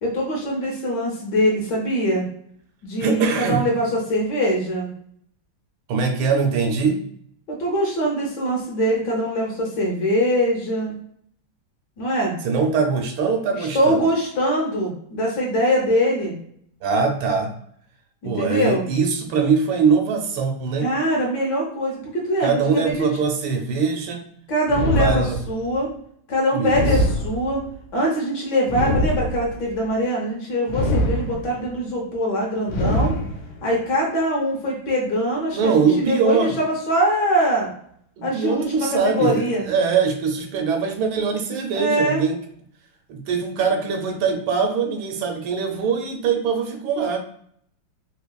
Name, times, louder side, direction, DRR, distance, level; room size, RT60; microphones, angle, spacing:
voice 1, 0.0-2.2 2.8-4.9 7.5-11.0 12.0-12.3 13.6-16.3 18.2-18.8 20.8-23.1 24.5-25.9 26.3-27.6 27.9-33.1 33.6-37.7 38.2-39.7 41.7-42.2, equal, 65° left, -2 dB, 1.3 m, -23 dB
voice 2, 3.0-3.6 5.9-7.0 12.4-14.0 16.8-17.5 18.2-20.9 22.4-24.3 25.0-25.4 26.5-26.8 35.5-36.5 38.2-42.4 43.1-47.2, right 5 dB, 75° right, 4 dB, 1.3 m, -22 dB
sound 1, 24.7-25.7 26.7-27.8 28.7-29.7 30.7-31.7 32.7-33.7, left 1 dB, 90° left, 1.5 m, -23 dB
3.5 x 2.9 x 2.2 m, 0.65 s
omnidirectional pair, 2.3 m